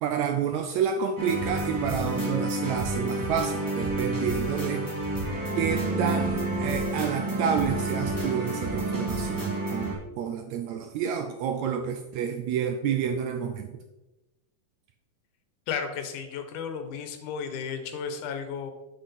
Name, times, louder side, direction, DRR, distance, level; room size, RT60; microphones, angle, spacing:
voice 1, 0.0-5.1 5.6-13.8, right 8 dB, 80° right, 6 dB, 1.6 m, -29 dB
sound 1, 1.2-9.9, right 2 dB, 15° right, 0.8 m, -29 dB
voice 2, 15.7-18.7, left 6 dB, 80° left, 7 dB, 2.3 m, -33 dB
7.9 x 5.9 x 4.2 m, 1.0 s
omnidirectional pair, 3.6 m